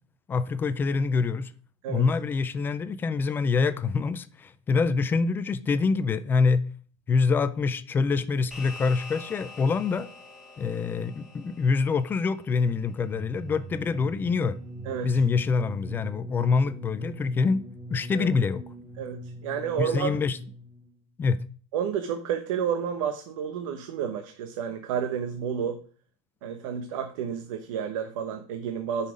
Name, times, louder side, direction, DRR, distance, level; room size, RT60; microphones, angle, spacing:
voice 1, 0.3-1.5 1.9-6.6 7.1-10.1 10.6-14.6 15.0-17.6 17.9-18.6 19.8-20.4 21.2-21.4, left 4 dB, 10° left, 0.3 m, -25 dB
sound 1, 8.5-13.2, left 3 dB, 5° right, 2.4 m, -46 dB
sound 2, 13.1-20.8, right 1 dB, 20° right, 1.0 m, -42 dB
voice 2, 14.8-15.2 18.1-18.3 19.0-20.1 21.7-25.8 26.4-29.1, right 8 dB, 80° right, 1.0 m, -30 dB
9.7 x 5.6 x 5.1 m
supercardioid pair, 175°, 17 cm